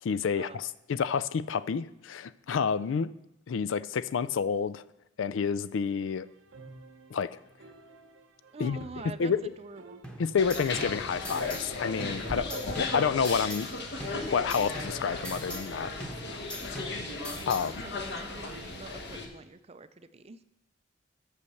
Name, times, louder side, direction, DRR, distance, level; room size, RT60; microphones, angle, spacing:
voice 1, 0.0-3.1 3.5-4.8 5.2-6.3 7.1-7.3 8.6-8.8 9.2-9.5 10.2-12.5 12.8-13.7 14.3-15.9 16.2-16.8 17.4-17.7, left 6 dB, 75° left, 16 dB, 0.4 m, -29 dB
sound 1, 5.8-18.7, right 2 dB, 85° right, 0.8 m, -53 dB
voice 2, 8.5-10.0 12.2-12.8 17.8-20.4, right 3 dB, 30° right, 12 dB, 0.4 m, -45 dB
sound 2, 10.0-11.7 12.0-13.7 14.0-15.7 16.0-17.7, equal, 5° left, 1.0 m, -42 dB
sound 3, 10.4-19.3, left 3 dB, 55° left, 1.3 m, -36 dB
8.3 x 6.5 x 7.0 m, 0.87 s
head